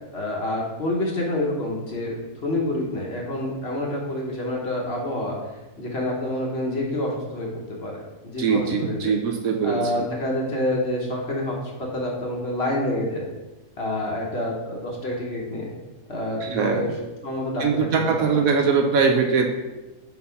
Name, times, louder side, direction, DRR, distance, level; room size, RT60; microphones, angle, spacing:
voice 1, 0.1-5.4 5.8-7.9 8.2-9.1 9.6-13.2 13.8-15.7 16.1-16.9 17.2-17.9 18.1-18.4, left 1 dB, 45° left, -2 dB, 1.2 m, -27 dB
voice 2, 8.4-10.1 16.4-16.9 17.6-19.5, right 5 dB, 70° right, 3 dB, 1.0 m, -22 dB
4.2 x 4.1 x 5.6 m, 1.1 s
omnidirectional pair, 1.7 m